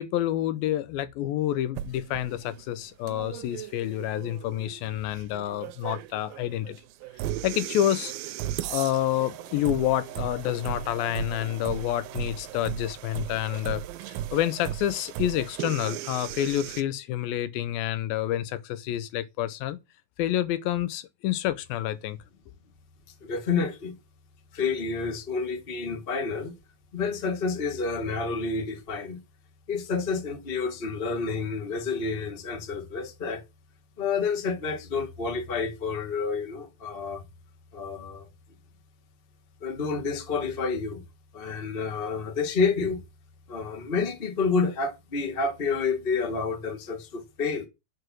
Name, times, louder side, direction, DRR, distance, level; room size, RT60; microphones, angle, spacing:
voice 1, 0.0-6.8 7.4-8.1 8.7-19.8 20.2-22.2, left 12 dB, 80° left, 2.5 m, -28 dB
sound 1, 1.8-16.8, right 12 dB, 80° right, 2.3 m, -37 dB
voice 2, 23.2-23.9 24.5-26.5 26.9-29.2 29.7-33.4 34.0-37.2 37.7-38.3 39.6-41.0 41.3-43.0 43.5-47.7, left 4 dB, 55° left, 0.6 m, -29 dB
9.5 x 4.9 x 6.2 m
omnidirectional pair, 4.2 m